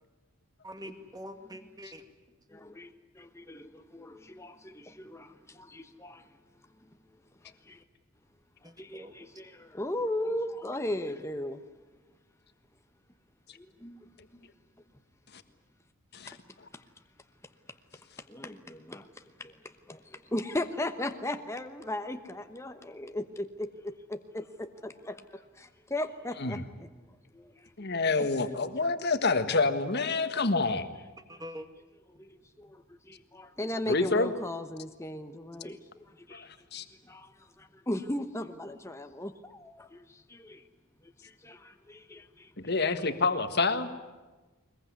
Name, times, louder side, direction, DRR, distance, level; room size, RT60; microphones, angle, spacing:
voice 1, 0.6-2.0 8.6-9.1 31.3-31.7, equal, 20° right, 7 dB, 2.0 m, -44 dB
voice 2, 2.5-6.3 7.4-7.8 8.6-11.6 13.6-14.2 16.3-16.4 16.7-16.8 18.2-26.9 27.3-28.3 31.3-31.4 32.1-40.6 41.0-43.1, left 1 dB, 15° left, 7 dB, 1.0 m, -38 dB
voice 3, 27.8-30.9 33.9-34.3 36.3-36.9 42.6-43.9, left 3 dB, 50° left, 10 dB, 1.6 m, -28 dB
22.0 x 21.5 x 9.6 m, 1.2 s
head